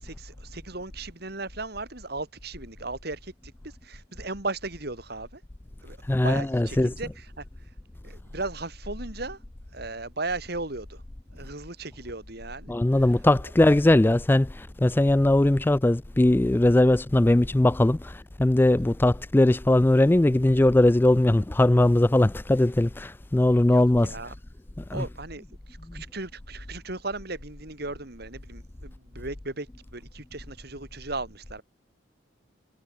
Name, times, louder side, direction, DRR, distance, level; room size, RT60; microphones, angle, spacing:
voice 1, 0.0-5.4 5.8-7.4 8.0-9.4 9.7-11.0 11.3-12.7 23.7-24.3 24.9-31.6, right 2 dB, 55° right, 3.4 m, -36 dB
voice 2, 6.1-6.9 12.7-24.2 24.9-25.0, left 1 dB, 10° left, 0.3 m, -20 dB
head